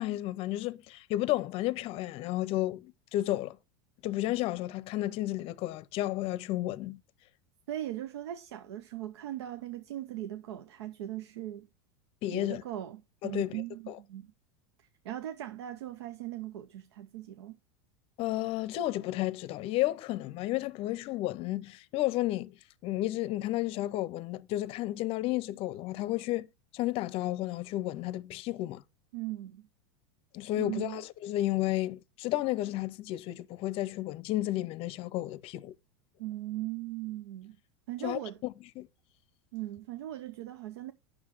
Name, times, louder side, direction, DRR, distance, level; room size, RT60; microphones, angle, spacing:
voice 1, 0.0-3.6 4.0-7.0 12.2-12.6 13.2-13.6 18.2-22.6 22.8-26.5 26.7-28.8 30.3-35.8 38.0-38.9, left 15 dB, 45° left, 0.6 m, -32 dB
voice 2, 7.7-11.7 12.3-14.3 14.8-17.6 29.1-29.7 30.6-31.0 36.2-37.6 37.9-38.4 39.5-40.9, right 13 dB, 85° right, 0.7 m, -39 dB
9.5 x 6.3 x 3.0 m
supercardioid pair, 120°, 14 cm